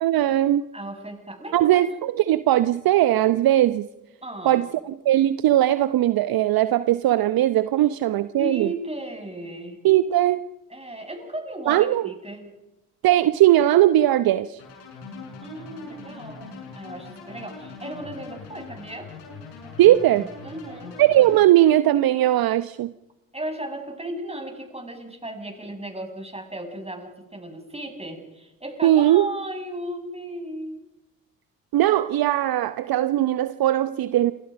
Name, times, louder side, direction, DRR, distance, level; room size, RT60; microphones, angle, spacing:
voice 1, 0.0-0.7 1.5-3.9 4.4-8.7 9.8-10.4 11.7-12.0 13.0-14.6 19.8-20.3 21.0-22.9 28.8-29.3 31.7-34.3, right 13 dB, 55° right, 13 dB, 0.9 m, -19 dB
voice 2, 0.7-1.8 4.2-4.6 8.4-9.8 10.7-12.5 15.4-19.1 20.4-21.0 23.3-30.8, right 1 dB, 15° right, 4 dB, 7.2 m, -35 dB
sound 1, 14.6-21.4, left 4 dB, 70° left, 7.2 m, -41 dB
27.5 x 25.5 x 5.3 m, 0.94 s
hypercardioid pair, 45°, 43 cm